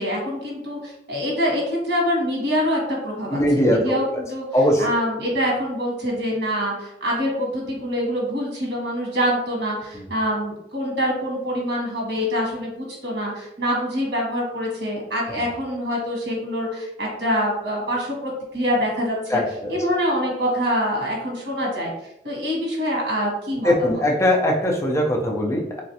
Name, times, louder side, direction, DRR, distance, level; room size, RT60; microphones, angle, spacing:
voice 1, 0.0-4.4 4.8-19.4 19.7-21.9 22.2-24.0, equal, 70° right, -2 dB, 1.0 m, -25 dB
voice 2, 3.3-4.0 4.5-5.0 9.9-10.0 19.3-19.7 23.6-25.8, left 1 dB, 15° left, 0 dB, 0.4 m, -20 dB
3.0 x 2.4 x 2.7 m, 0.88 s
head